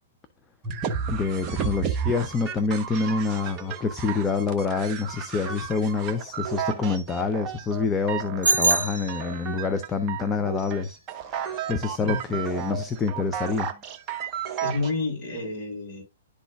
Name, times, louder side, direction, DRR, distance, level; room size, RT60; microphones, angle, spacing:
sound 1, 0.6-14.9, right 8 dB, 25° right, 1.1 m, -33 dB
voice 1, 1.1-11.0 11.3-13.7, left 4 dB, 15° left, 0.6 m, -27 dB
Bicycle bell, 8.4-9.7, right 3 dB, 85° right, 0.5 m, -24 dB
voice 2, 12.0-12.5 14.6-16.0, left 3 dB, 35° left, 4.6 m, -30 dB
11.5 x 3.9 x 2.4 m
figure-of-eight pair, 120°, 0 cm